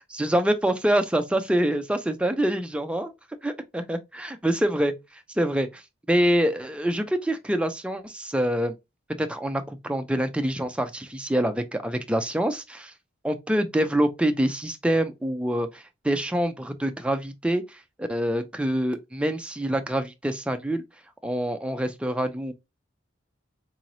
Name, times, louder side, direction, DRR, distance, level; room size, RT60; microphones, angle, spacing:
voice 1, 0.1-3.1 3.4-4.9 5.4-5.8 6.1-8.7 9.1-12.9 13.2-20.8 21.2-22.5, right 1 dB, 5° right, 0.4 m, -26 dB
3.9 x 3.1 x 2.6 m
head